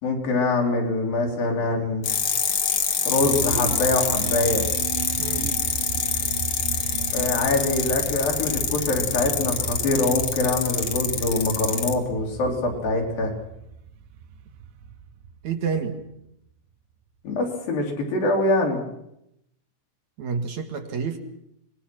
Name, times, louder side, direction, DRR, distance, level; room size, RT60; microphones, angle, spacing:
voice 1, 0.0-2.0 3.1-4.7 7.1-13.3 17.2-18.8, left 2 dB, 80° left, 1 dB, 5.0 m, -24 dB
sound 1, 2.0-11.9, left 7 dB, 50° left, 1.8 m, -26 dB
sound 2, 3.2-16.1, right 8 dB, 75° right, 2.5 m, -35 dB
voice 2, 5.2-5.5 15.4-16.0 20.2-21.2, right 6 dB, 60° right, 5 dB, 2.7 m, -29 dB
24.5 x 20.0 x 6.0 m, 0.80 s
omnidirectional pair, 4.0 m